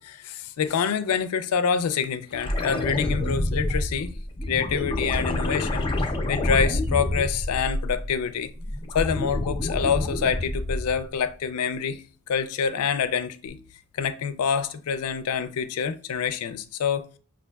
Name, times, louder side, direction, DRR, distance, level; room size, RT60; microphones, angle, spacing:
voice 1, 0.0-4.1 4.5-5.9 6.3-8.5 8.9-12.0 12.3-13.6 14.0-17.1, left 6 dB, 80° left, 0.4 m, -26 dB
sound 1, 2.3-8.1 8.5-11.0 13.5-13.6, left 1 dB, 25° left, 0.4 m, -28 dB
5.2 x 2.5 x 2.3 m
head